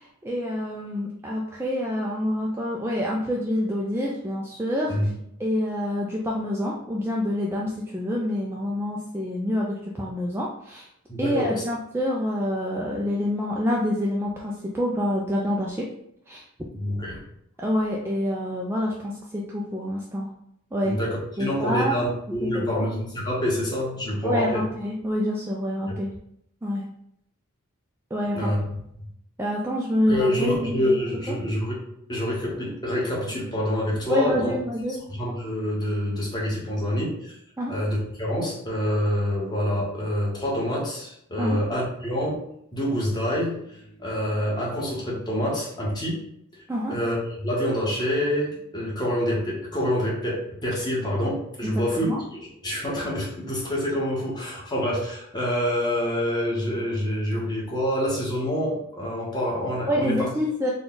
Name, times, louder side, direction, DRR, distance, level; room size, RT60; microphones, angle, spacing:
voice 1, 0.0-5.1 5.4-10.9 11.2-15.9 16.3-16.4 17.6-20.3 20.7-21.0 21.4-21.9 22.5-22.8 24.2-26.1 26.6-26.8 28.1-28.5 29.4-30.8 31.3-31.4 34.1-35.0 37.6-37.7 41.4-41.6 46.7-46.9 51.6-52.2 59.9-60.7, left 1 dB, 10° right, -3 dB, 0.3 m, -27 dB
voice 2, 11.1-11.6 16.7-17.2 20.8-24.6 28.3-28.6 30.1-31.8 32.1-34.5 34.9-37.4 37.7-42.4 42.7-46.2 46.9-52.1 52.4-60.3, equal, 20° left, -5 dB, 1.1 m, -27 dB
3.9 x 2.3 x 3.8 m, 0.75 s
head